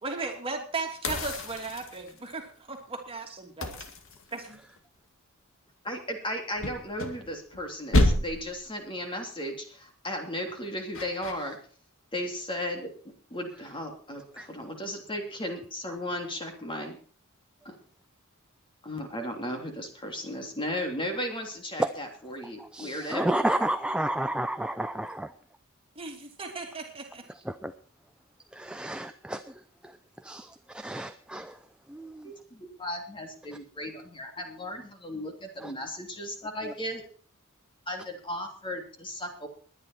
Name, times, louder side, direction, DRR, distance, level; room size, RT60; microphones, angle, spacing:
voice 1, 0.0-3.7 4.3-4.6 25.9-27.2, right 3 dB, 25° right, 2 dB, 2.8 m, -36 dB
sound 1, 1.0-2.3 3.6-4.8 6.6-7.6 7.9-8.6 10.9-11.3, left 1 dB, 65° left, 2.2 m, -28 dB
voice 2, 5.8-11.6 12.1-12.9 13.3-17.0 17.6-17.7 18.8-23.3 32.2-37.0 37.9-39.5, left 1 dB, 25° left, 4 dB, 3.0 m, -35 dB
voice 3, 22.7-25.3 27.6-27.7 28.6-29.4 30.2-30.5 30.7-31.5 31.9-32.3 35.6-35.7, right 1 dB, 5° right, 9 dB, 0.6 m, -30 dB
20.5 x 10.0 x 4.5 m, 0.43 s
head